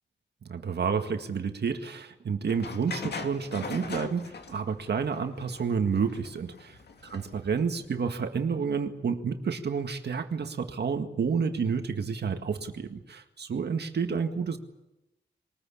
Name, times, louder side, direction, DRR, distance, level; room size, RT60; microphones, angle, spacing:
voice 1, 0.5-6.8 7.1-14.6, right 6 dB, 60° right, 6 dB, 1.9 m, -30 dB
sound 1, 2.5-8.0, left 4 dB, 60° left, 2.5 m, -41 dB
22.5 x 20.0 x 8.7 m, 0.94 s
wide cardioid pair, 155°, 19 cm